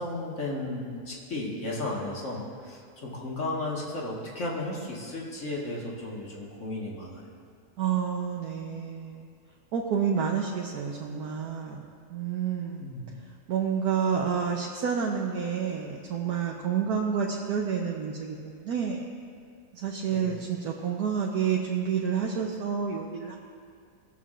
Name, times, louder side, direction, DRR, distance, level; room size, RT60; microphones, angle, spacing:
voice 1, 0.0-7.3 12.8-13.0 20.1-20.3, left 2 dB, 50° left, -3 dB, 1.9 m, -34 dB
voice 2, 7.8-9.3 9.7-11.8 12.1-12.9 13.5-19.0 19.7-23.4, right 7 dB, 75° right, -2 dB, 1.3 m, -29 dB
21.0 x 7.1 x 2.5 m, 2.2 s
omnidirectional pair, 1.6 m